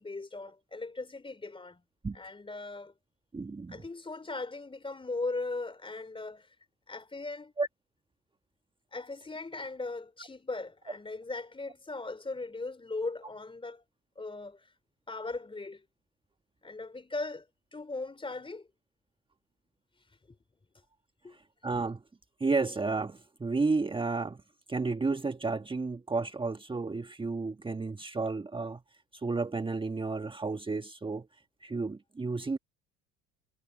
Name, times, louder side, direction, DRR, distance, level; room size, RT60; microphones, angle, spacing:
voice 1, 0.0-1.8 2.1-2.9 3.7-6.5 6.9-7.5 8.9-13.8 14.1-14.7 15.1-15.8 16.6-17.5 17.7-18.7 21.2-21.4, left 3 dB, 15° left, 3.3 m, -38 dB
voice 2, 3.3-3.8 7.6-7.7 21.3-22.0 22.4-24.4 24.7-28.8 29.1-31.3 31.6-32.6, right 3 dB, 15° right, 1.5 m, -32 dB
figure-of-eight pair, 60°, 34 cm